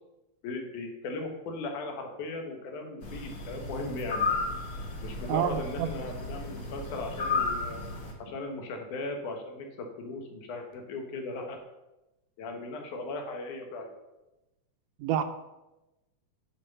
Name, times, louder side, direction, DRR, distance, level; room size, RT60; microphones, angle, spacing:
voice 1, 0.4-4.3 5.0-7.8 8.2-11.6 12.4-13.9, left 2 dB, 80° left, 3 dB, 2.7 m, -37 dB
sound 1, 3.0-8.1, left 3 dB, 50° left, 1.1 m, -33 dB
voice 2, 5.3-5.9 15.0-15.2, right 10 dB, 80° right, 9 dB, 1.6 m, -28 dB
7.3 x 5.5 x 6.6 m, 1.0 s
omnidirectional pair, 3.5 m